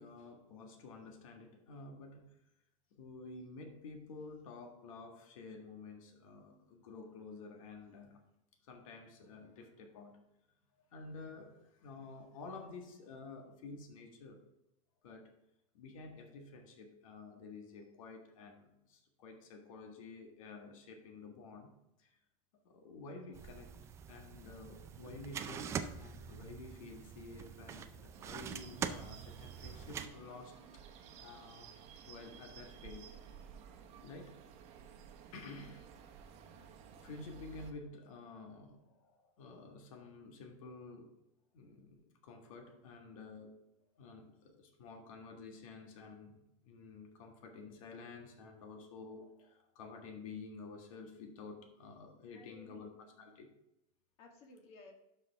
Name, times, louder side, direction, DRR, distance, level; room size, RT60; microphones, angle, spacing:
voice 1, 0.0-2.3 2.9-8.2 8.6-10.2 10.9-14.4 15.0-15.3 15.7-21.7 22.0-22.1 22.6-23.7 24.1-31.7 32.0-33.2 34.0-34.4 35.3-35.9 36.2-36.3 37.0-41.1 41.5-43.6 44.0-53.5, left 3 dB, 80° left, 3 dB, 1.7 m, -51 dB
sound 1, 23.3-30.1, right 7 dB, 15° right, 0.4 m, -44 dB
sound 2, 28.1-37.7, right 7 dB, 40° right, 1.0 m, -55 dB
voice 2, 52.3-53.3 54.2-54.9, left 2 dB, 35° left, 3 dB, 1.5 m, -57 dB
12.0 x 5.4 x 3.5 m, 0.89 s
supercardioid pair, 165°, 17 cm